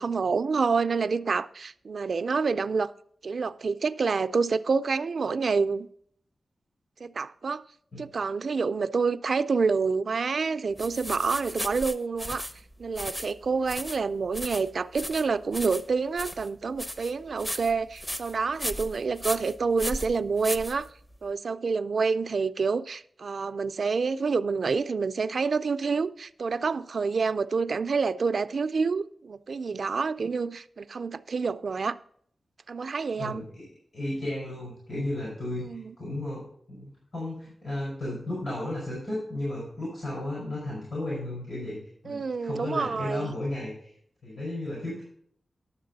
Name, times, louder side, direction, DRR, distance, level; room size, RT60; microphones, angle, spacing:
voice 1, 0.0-2.9 3.2-5.9 7.0-7.6 8.0-12.5 12.8-20.9 21.2-32.0 32.7-33.5 35.6-35.9 42.1-43.3, right 4 dB, 65° right, 0.4 m, -28 dB
sound 1, 10.8-21.2, equal, 15° left, 0.6 m, -37 dB
voice 2, 33.2-33.5 33.9-41.8 42.0-43.9 44.2-45.0, left 1 dB, 65° left, 4.7 m, -34 dB
11.0 x 7.3 x 4.0 m
wide cardioid pair, 100°, 0 cm